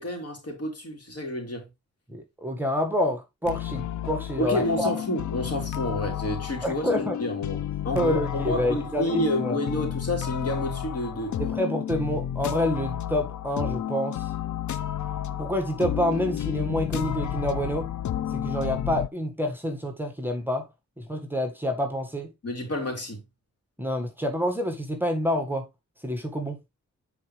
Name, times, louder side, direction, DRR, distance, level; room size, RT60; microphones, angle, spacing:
voice 1, 0.0-1.7 4.4-11.4 22.4-23.2, left 1 dB, 50° left, 3.6 m, -30 dB
voice 2, 2.1-4.9 6.6-7.2 8.0-9.6 11.4-14.3 15.4-17.9 18.3-20.7 21.0-22.3 23.8-25.7 26.0-26.6, equal, 5° right, 1.7 m, -28 dB
sound 1, 3.4-19.1, left 10 dB, 65° left, 0.7 m, -31 dB
9.5 x 4.7 x 3.3 m
cardioid pair, 90°, 31 cm